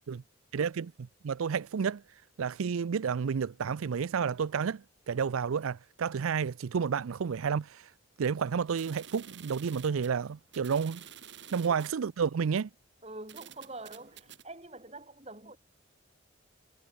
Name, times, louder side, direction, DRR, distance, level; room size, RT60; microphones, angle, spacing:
voice 1, 0.5-2.0 2.4-7.9 8.2-11.0 11.5-12.7, right 6 dB, 85° right, 0.5 m, -31 dB
sound 1, 8.7-12.0 12.7-12.8 13.3-14.4, right 9 dB, 55° right, 3.5 m, -50 dB
voice 2, 13.0-15.6, right 2 dB, 30° right, 5.5 m, -45 dB
head